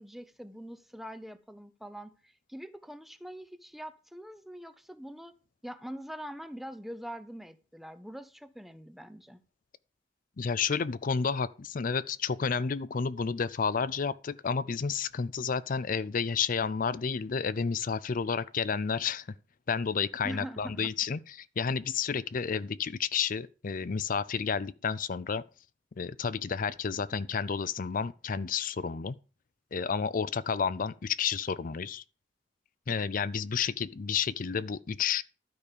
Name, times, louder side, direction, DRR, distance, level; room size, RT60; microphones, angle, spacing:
voice 1, 0.0-5.3 5.6-9.4 20.2-20.9, equal, ahead, 0.7 m, -43 dB
voice 2, 10.4-19.3 19.7-25.4 26.0-29.2 29.7-32.0 32.9-35.2, left 6 dB, 50° left, 0.5 m, -31 dB
12.5 x 5.3 x 6.7 m
head